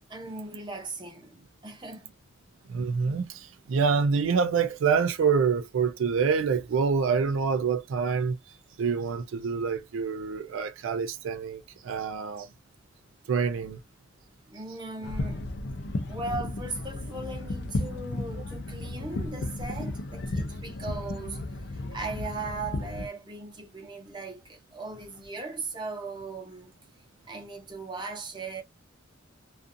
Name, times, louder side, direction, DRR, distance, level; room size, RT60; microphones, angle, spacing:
voice 1, 0.1-2.0 14.5-15.4 16.1-26.7 27.3-28.6, right 3 dB, 20° right, 0.7 m, -38 dB
voice 2, 2.7-8.4 8.8-12.5 13.3-13.8, right 5 dB, 80° right, 0.4 m, -26 dB
sound 1, 15.0-23.1, left 2 dB, 55° left, 0.4 m, -34 dB
2.4 x 2.4 x 2.5 m
head